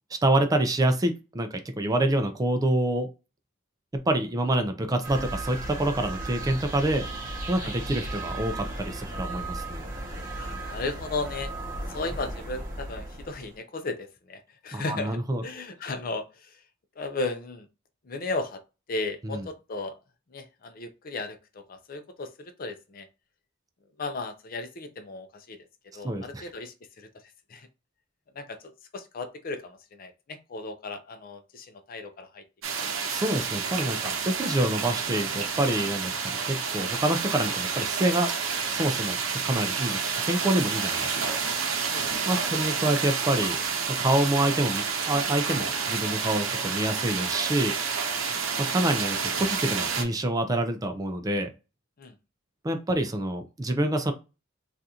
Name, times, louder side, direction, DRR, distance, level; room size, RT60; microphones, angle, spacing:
voice 1, 0.2-3.1 3.9-7.0 7.5-9.9 14.7-15.4 19.2-19.4 26.0-26.4 33.1-38.3 38.7-41.3 42.3-43.6 43.9-47.7 48.6-51.5 52.6-54.1, right 1 dB, 20° right, 6 dB, 0.4 m, -27 dB
sound 1, 5.0-13.6, right 2 dB, 45° right, 1.1 m, -36 dB
voice 2, 10.3-11.5 11.9-16.6 17.0-17.7 18.0-18.6 18.9-20.0 20.3-23.1 24.0-25.7 25.9-27.1 27.5-27.7 28.4-28.6 28.9-32.4 32.8-32.9 36.3-36.4 41.9-42.1 42.4-42.7 48.2-48.4 52.0-52.1, left 3 dB, 45° left, 8 dB, 0.5 m, -35 dB
sound 2, 32.6-50.0, right 6 dB, 75° right, 0.7 m, -29 dB
3.6 x 2.5 x 2.8 m, 0.29 s
head